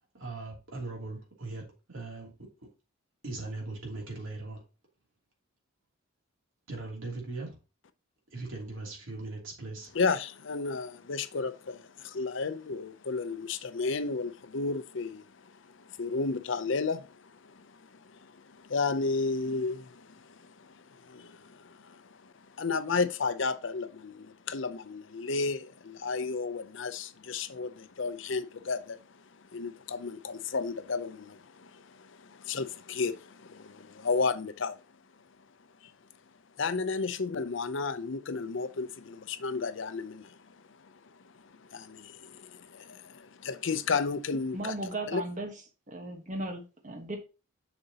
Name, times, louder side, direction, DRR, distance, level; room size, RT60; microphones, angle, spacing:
voice 1, 0.1-1.6 1.9-2.3 3.2-4.6 6.7-7.6 8.3-9.9, right 2 dB, 75° right, 2.9 m, -39 dB
voice 2, 9.9-29.0 29.5-34.8 35.8-35.9 36.6-40.6 41.7-44.8 45.1-45.2, left 4 dB, 65° left, 0.6 m, -33 dB
voice 3, 44.5-45.5 45.9-47.2, right 2 dB, 40° right, 1.3 m, -36 dB
6.9 x 6.8 x 2.9 m
head